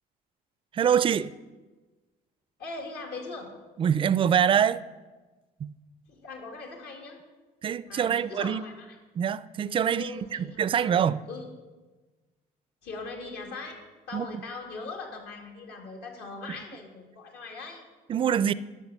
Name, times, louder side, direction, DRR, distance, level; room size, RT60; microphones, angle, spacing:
voice 1, 0.7-1.3 3.8-4.8 5.6-5.7 7.6-8.6 9.2-11.2 14.1-14.4 16.5-16.6 18.1-18.5, right 8 dB, 30° right, 0.3 m, -25 dB
voice 2, 2.6-3.5 6.1-7.2 7.9-9.0 9.9-10.9 11.3-11.5 12.8-13.8 14.1-17.8, left 3 dB, 70° left, 2.1 m, -40 dB
12.0 x 5.6 x 6.7 m
cardioid pair, 110°, 17 cm